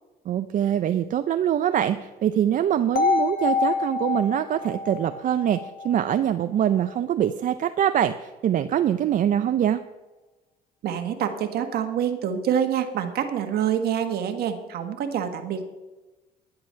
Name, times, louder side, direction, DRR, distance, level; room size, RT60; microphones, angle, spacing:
voice 1, 0.3-9.8, right 10 dB, 50° right, 10 dB, 0.6 m, -24 dB
sound 1, 3.0-6.9, left 5 dB, 60° left, 1.9 m, -27 dB
voice 2, 10.8-15.6, right 9 dB, 70° right, 7 dB, 1.7 m, -26 dB
10.5 x 10.5 x 5.7 m, 1.1 s
cardioid pair, 110°, 17 cm